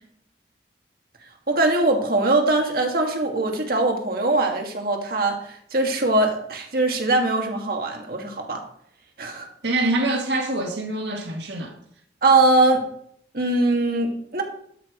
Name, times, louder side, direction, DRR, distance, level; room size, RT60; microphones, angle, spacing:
voice 1, 1.5-5.4 5.7-8.6 9.2-9.5 12.2-12.9 13.3-14.4, right 2 dB, 55° right, 3 dB, 1.7 m, -21 dB
voice 2, 9.6-11.7, right 2 dB, 80° right, 2 dB, 1.6 m, -25 dB
12.5 x 4.8 x 5.0 m, 0.67 s
head